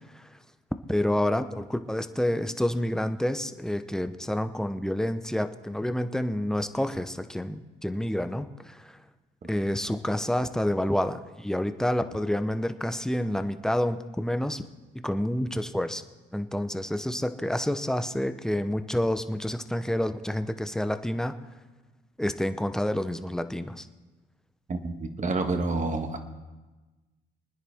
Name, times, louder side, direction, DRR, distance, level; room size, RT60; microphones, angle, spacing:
voice 1, 0.9-9.0 9.5-14.6 15.0-16.0 16.3-21.3 22.2-23.9, left 1 dB, 5° left, 9 dB, 0.8 m, -28 dB
voice 2, 24.7-26.2, right 3 dB, 40° right, 5 dB, 1.6 m, -29 dB
24.5 x 9.9 x 3.6 m, 1.2 s
cardioid pair, 90°, 20 cm